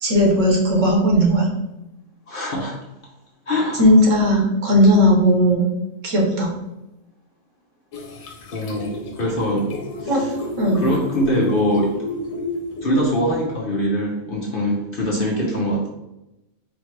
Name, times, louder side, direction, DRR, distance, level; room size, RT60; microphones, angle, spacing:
voice 1, 0.0-1.5 3.8-5.7 6.0-6.5 10.1-10.2 10.6-10.8, equal, 60° right, 0 dB, 1.3 m, -16 dB
voice 2, 2.3-2.8 3.5-3.9 8.5-10.3 10.7-12.0 12.8-15.9, equal, 50° left, -2 dB, 0.7 m, -23 dB
sound 1, 7.9-13.3, left 2 dB, 70° left, 1.1 m, -31 dB
4.1 x 3.2 x 3.2 m, 0.93 s
omnidirectional pair, 1.5 m